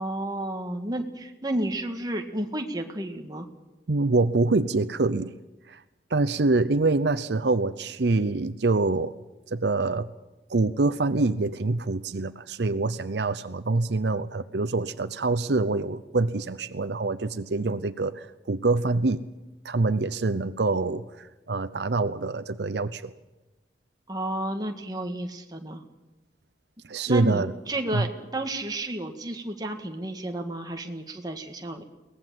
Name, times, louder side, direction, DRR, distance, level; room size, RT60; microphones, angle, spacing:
voice 1, 0.0-3.5 24.1-25.8 27.1-31.8, right 1 dB, 20° right, 4 dB, 1.7 m, -31 dB
voice 2, 3.9-5.4 5.7-5.8 6.1-9.1 9.5-10.1 10.5-19.3 19.6-23.1 26.9-27.5 27.9-28.0, right 3 dB, 75° right, 12 dB, 0.7 m, -25 dB
22.5 x 18.0 x 7.6 m, 1.1 s
head